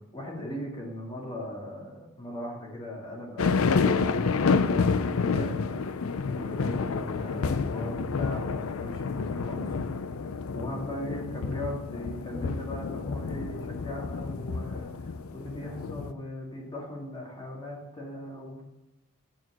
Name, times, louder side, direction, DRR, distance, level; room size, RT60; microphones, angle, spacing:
voice 1, 0.0-5.9 6.3-9.7 10.5-18.6, left 1 dB, 20° left, -3 dB, 2.1 m, -39 dB
sound 1, 3.4-16.1, left 4 dB, 75° left, 0.5 m, -29 dB
8.9 x 4.6 x 7.3 m, 0.97 s
head